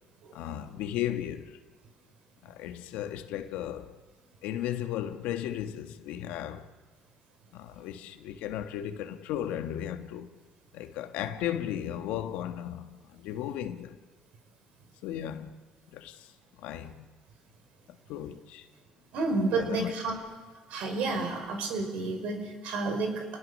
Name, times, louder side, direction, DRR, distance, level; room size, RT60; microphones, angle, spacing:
voice 1, 0.3-1.6 2.4-3.9 4.4-6.7 7.5-10.4 10.7-14.0 15.0-15.6 15.9-16.3 16.6-17.1 17.9-18.7 19.5-19.9, left 11 dB, 85° left, 1.4 m, -35 dB
voice 2, 19.1-20.2 20.7-23.3, right 3 dB, 75° right, 5.6 m, -30 dB
29.5 x 20.0 x 6.5 m
supercardioid pair, 75°, 2 cm